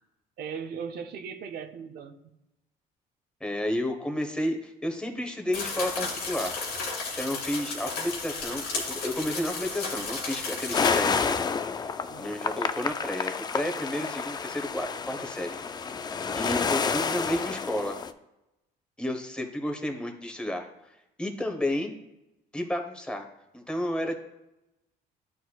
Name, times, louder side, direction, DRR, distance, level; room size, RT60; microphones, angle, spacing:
voice 1, 0.4-2.2 12.1-12.5, right 6 dB, 65° right, 7 dB, 0.6 m, -38 dB
voice 2, 3.4-6.5 7.2-11.5 11.9-15.6 16.3-18.0 19.0-20.7 21.2-21.9 22.5-23.2 23.5-24.2, left 1 dB, 5° left, 3 dB, 1.1 m, -31 dB
sound 1, 5.5-11.0, left 4 dB, 90° left, 2.2 m, -33 dB
sound 2, 10.7-18.1, left 5 dB, 25° left, 0.3 m, -29 dB
10.5 x 4.2 x 2.3 m, 0.92 s
cardioid pair, 110°, 17 cm